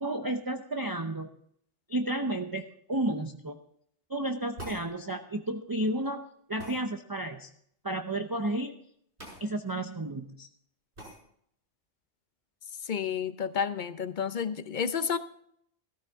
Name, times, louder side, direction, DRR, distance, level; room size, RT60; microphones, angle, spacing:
voice 1, 0.0-1.3 1.9-3.6 4.1-6.2 6.5-7.5 7.8-8.8 9.4-10.5, right 1 dB, 25° right, 5 dB, 0.6 m, -32 dB
sound 1, 4.6-4.9 6.6-6.8 9.2-9.4 9.8-9.9 11.0-11.2, right 1 dB, 65° right, 7.6 m, -43 dB
voice 2, 12.8-15.2, left 7 dB, 45° left, 12 dB, 0.8 m, -30 dB
15.0 x 13.5 x 3.6 m, 0.68 s
omnidirectional pair, 1.2 m